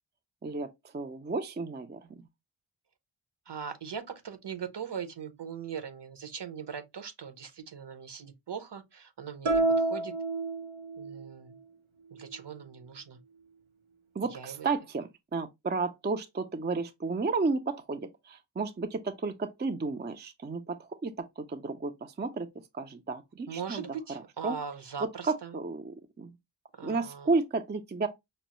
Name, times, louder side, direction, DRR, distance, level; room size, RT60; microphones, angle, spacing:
voice 1, 0.4-2.2 14.2-22.5 22.7-24.6 25.3-26.3 26.8-28.1, right 3 dB, 25° right, 0.4 m, -33 dB
voice 2, 3.5-10.1 11.0-11.6 12.1-13.2 14.3-14.7 23.5-25.6 26.8-27.3, right 7 dB, 60° right, 0.8 m, -40 dB
sound 1, 9.5-11.3, right 2 dB, 90° right, 0.7 m, -28 dB
5.3 x 2.0 x 2.9 m
wide cardioid pair, 60°, 48 cm